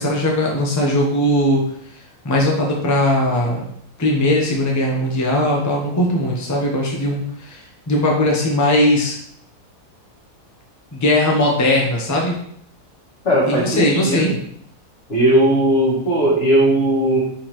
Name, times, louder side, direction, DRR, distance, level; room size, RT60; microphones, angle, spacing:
voice 1, 0.0-1.7 2.2-3.6 4.0-9.2 10.9-12.4 13.5-14.3, left 1 dB, 15° left, -2 dB, 0.6 m, -19 dB
voice 2, 13.2-14.3 15.1-17.2, right 1 dB, 45° left, -7 dB, 2.3 m, -17 dB
4.7 x 3.6 x 3.1 m, 0.67 s
omnidirectional pair, 1.6 m